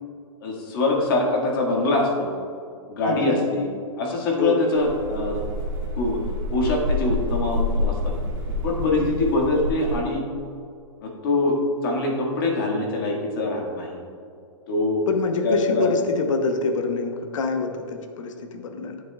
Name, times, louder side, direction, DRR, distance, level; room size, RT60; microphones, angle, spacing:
voice 1, 0.4-2.3 2.9-3.7 4.0-5.4 5.9-6.2 6.5-8.1 8.6-10.2 11.0-14.0 14.7-15.0 15.4-15.9, left 2 dB, 45° left, -1 dB, 1.8 m, -24 dB
voice 2, 3.1-3.4 4.4-4.6 8.8-9.2 15.1-19.0, left 3 dB, 70° left, 5 dB, 1.0 m, -26 dB
sound 1, 4.7-10.0, left 1 dB, 20° right, 1.5 m, -27 dB
13.0 x 7.8 x 2.3 m, 2.5 s
hypercardioid pair, 170°, 17 cm